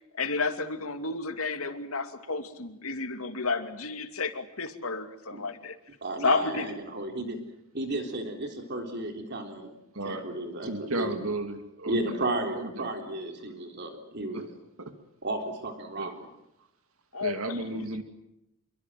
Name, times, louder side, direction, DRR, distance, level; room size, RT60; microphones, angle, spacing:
voice 1, 0.2-5.8 6.2-6.8 17.1-17.3 17.7-18.0, left 3 dB, 80° left, 7 dB, 2.7 m, -31 dB
voice 2, 6.0-7.4 7.7-9.7 10.0-11.3 11.9-14.5 15.2-16.1, right 2 dB, 50° right, 4 dB, 3.6 m, -33 dB
voice 3, 9.9-10.2 10.6-12.2 12.5-12.9 14.3-14.4 14.8-14.9 16.0-16.2 17.2-18.0, right 2 dB, 75° right, 7 dB, 2.5 m, -34 dB
27.0 x 23.5 x 7.7 m, 0.84 s
head